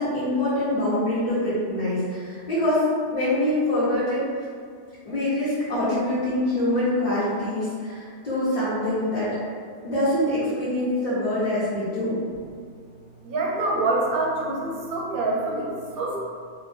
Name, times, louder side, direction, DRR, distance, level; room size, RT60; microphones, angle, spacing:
voice 1, 0.0-4.4 5.0-9.4 9.8-12.2, left 1 dB, 40° left, -13 dB, 1.0 m, -24 dB
voice 2, 13.2-16.2, right 2 dB, 60° right, -3 dB, 0.7 m, -26 dB
2.8 x 2.0 x 3.3 m, 2.2 s
omnidirectional pair, 1.1 m